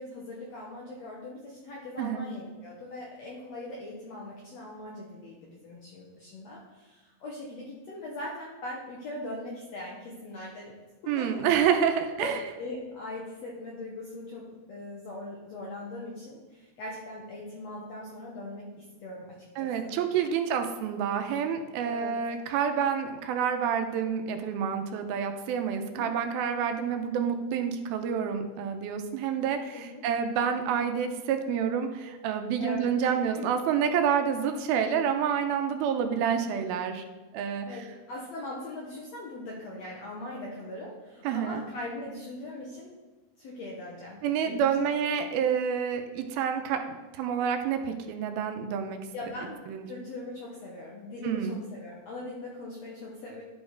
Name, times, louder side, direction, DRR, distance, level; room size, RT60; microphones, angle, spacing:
voice 1, 0.0-10.8 11.1-11.4 12.2-12.3 12.6-20.0 21.8-22.2 25.8-26.1 29.7-30.0 32.6-33.5 37.7-42.9 43.4-44.9 49.1-49.6 49.9-53.4, left 1 dB, 70° left, -3 dB, 1.6 m, -40 dB
voice 2, 2.0-2.3 11.1-12.4 19.6-37.1 37.3-37.8 41.2-41.6 44.2-49.0 49.7-49.9 51.2-51.6, right 7 dB, 85° right, 6 dB, 2.4 m, -28 dB
11.5 x 4.3 x 4.6 m, 1.2 s
omnidirectional pair, 4.4 m